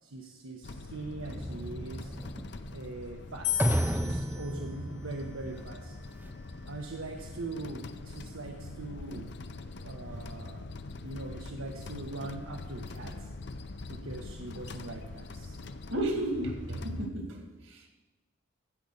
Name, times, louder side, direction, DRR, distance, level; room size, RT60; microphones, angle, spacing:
voice 1, 0.0-2.1 2.7-5.9 6.7-9.4 9.8-10.7 11.0-13.3 13.9-15.6 16.7-16.9, right 2 dB, 85° right, 1 dB, 1.0 m, -42 dB
sound 1, 0.6-17.1, left 2 dB, 55° left, 0.6 m, -44 dB
sound 2, 1.3-6.3, right 1 dB, 10° right, 0.4 m, -33 dB
sound 3, 3.4-6.7, left 10 dB, 75° left, 2.8 m, -38 dB
voice 2, 15.9-17.4, right 1 dB, 70° right, 3 dB, 2.2 m, -32 dB
15.0 x 5.5 x 6.5 m, 1.1 s
head